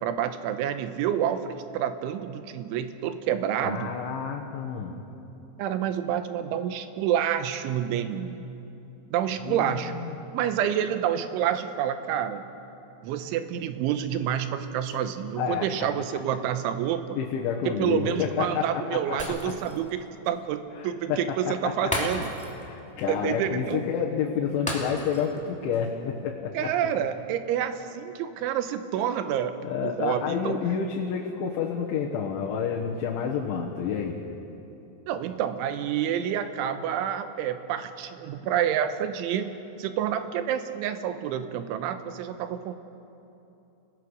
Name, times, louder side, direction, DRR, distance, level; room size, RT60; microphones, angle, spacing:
voice 1, 0.0-3.9 5.6-8.5 9.1-12.4 13.0-17.2 17.7-22.3 23.1-23.8 26.6-30.5 35.1-39.5 39.8-42.7, right 9 dB, 85° right, 9 dB, 3.4 m, -28 dB
voice 2, 3.6-5.0 9.4-10.2 15.4-15.9 17.2-19.5 20.8-22.1 22.6-26.7 29.6-34.2, left 7 dB, 80° left, -2 dB, 3.8 m, -29 dB
Shatter, 19.2-19.9 20.3-20.4 21.9-22.7 23.0-23.1 24.7-25.4 25.7-25.9, left 1 dB, 5° left, 1.4 m, -33 dB
30.0 x 18.0 x 6.5 m, 2.9 s
omnidirectional pair, 5.5 m